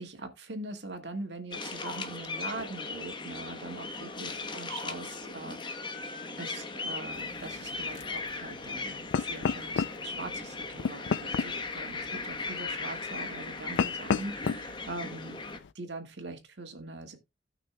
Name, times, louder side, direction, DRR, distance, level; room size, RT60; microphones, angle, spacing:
voice 1, 0.0-6.0 6.4-15.4 15.7-17.2, right 2 dB, 75° right, 1.9 m, -42 dB
sound 1, 1.5-15.6, left 3 dB, 25° left, 1.0 m, -38 dB
sound 2, 7.1-15.7, left 6 dB, 90° left, 0.4 m, -35 dB
16.5 x 5.9 x 2.2 m
head